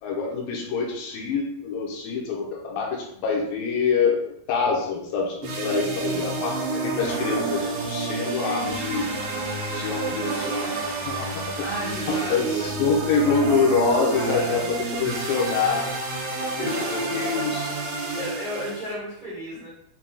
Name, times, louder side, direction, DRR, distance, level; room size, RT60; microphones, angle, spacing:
voice 1, 0.0-9.0 9.7-11.5 12.1-15.9 16.4-17.7, left 5 dB, 80° left, -1 dB, 2.5 m, -26 dB
sound 1, 5.4-18.9, right 3 dB, 80° right, 2.5 m, -29 dB
voice 2, 6.0-6.5 11.6-12.7 14.1-14.7 18.1-19.7, equal, 60° right, -9 dB, 0.5 m, -34 dB
7.3 x 2.8 x 2.3 m, 0.74 s
omnidirectional pair, 4.2 m